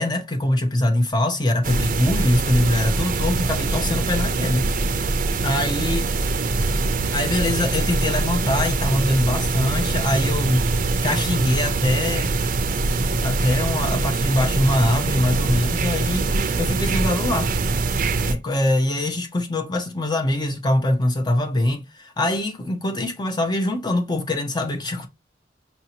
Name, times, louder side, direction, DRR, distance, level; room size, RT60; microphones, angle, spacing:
voice 1, 0.0-4.7 5.4-6.0 7.1-10.6 11.0-12.3 12.7-17.5 18.3-25.1, left 1 dB, 25° left, 0.5 m, -23 dB
sound 1, 1.6-18.3, right 3 dB, 45° right, 0.5 m, -23 dB
5.5 x 2.7 x 2.8 m
head